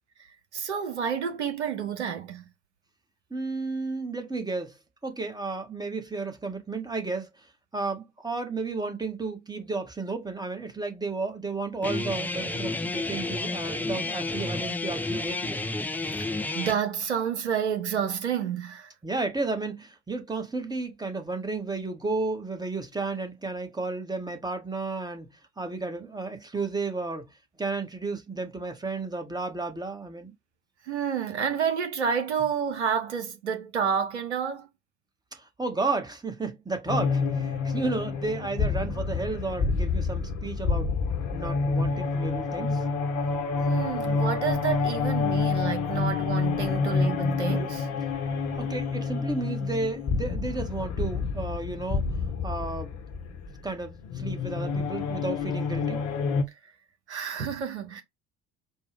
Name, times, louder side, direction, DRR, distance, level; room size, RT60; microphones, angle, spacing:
voice 1, 0.5-2.4 16.5-18.9 30.9-34.7 43.7-47.9 57.1-58.0, right 7 dB, 80° right, 0.8 m, -29 dB
voice 2, 3.3-15.6 19.0-27.3 27.6-30.3 35.3-40.9 41.3-42.8 48.6-52.0 52.4-53.0 53.6-56.0, right 3 dB, 10° right, 1.1 m, -33 dB
Guitar, 11.8-16.7, left 2 dB, 5° left, 0.5 m, -31 dB
sound 1, 36.9-56.4, left 4 dB, 55° left, 1.1 m, -28 dB
4.5 x 2.3 x 3.4 m
figure-of-eight pair, 55°, 34 cm